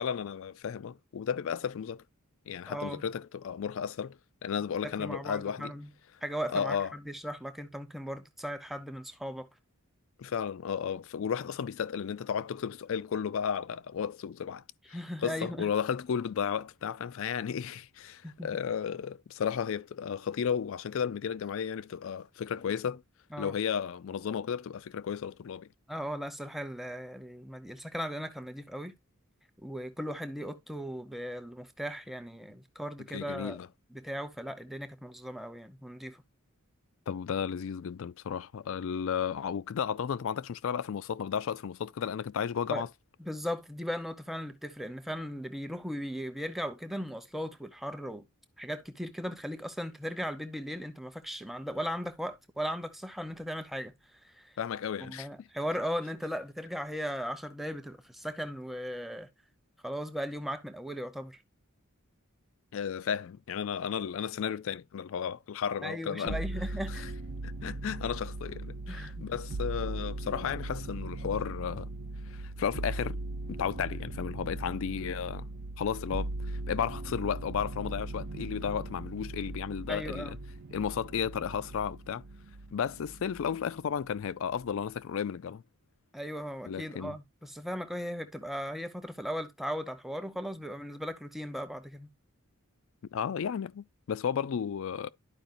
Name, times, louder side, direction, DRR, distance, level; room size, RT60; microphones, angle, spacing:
voice 1, 0.0-2.0 2.5-5.7 6.5-6.9 10.2-14.6 15.2-23.0 23.4-25.7 33.1-33.7 37.1-42.9 54.6-55.3 62.7-66.4 66.9-67.1 67.4-71.9 72.3-73.2 73.5-75.5 75.8-80.4 80.7-82.2 82.7-85.6 86.7-87.2 93.1-95.1, left 7 dB, 60° left, 0.3 m, -33 dB
voice 2, 2.7-3.0 4.8-5.9 6.2-9.5 14.9-15.7 18.2-18.6 23.3-23.5 25.9-28.9 29.6-33.6 33.9-36.2 42.7-42.8 43.2-48.3 48.6-54.6 55.0-59.3 59.8-61.4 65.8-67.1 68.9-69.3 79.9-80.4 86.1-92.1, equal, ahead, 0.7 m, -37 dB
sound 1, 66.3-83.7 84.0-84.8, right 2 dB, 50° right, 0.4 m, -39 dB
12.0 x 4.9 x 2.5 m
head